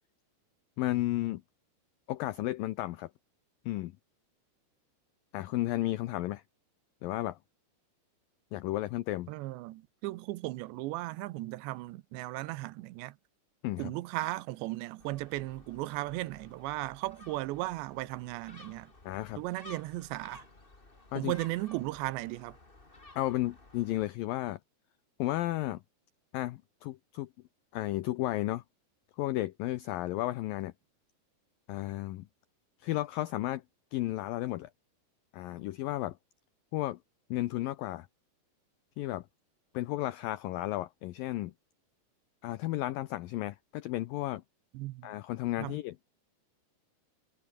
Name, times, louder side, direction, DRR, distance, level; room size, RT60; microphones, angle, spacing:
voice 1, 0.8-1.4 2.1-3.1 3.7-3.9 5.3-6.4 7.0-7.4 8.5-9.3 13.6-13.9 19.0-19.4 21.1-21.3 23.2-24.6 25.2-25.8 26.3-27.3 27.7-28.6 29.2-30.7 31.7-32.3 32.8-33.6 33.9-34.7 35.3-36.2 36.7-37.0 37.3-38.1 39.0-39.3 39.7-41.5 42.4-44.4 45.0-46.0, left 16 dB, 85° left, 2.0 m, -33 dB
voice 2, 9.3-13.2 13.8-18.9 19.4-20.4 21.2-22.6 44.7-45.1 45.6-45.8, right 18 dB, 85° right, 3.0 m, -36 dB
Gull seagull, 15.0-24.1, left 2 dB, 15° left, 2.2 m, -55 dB
omnidirectional pair, 5.0 m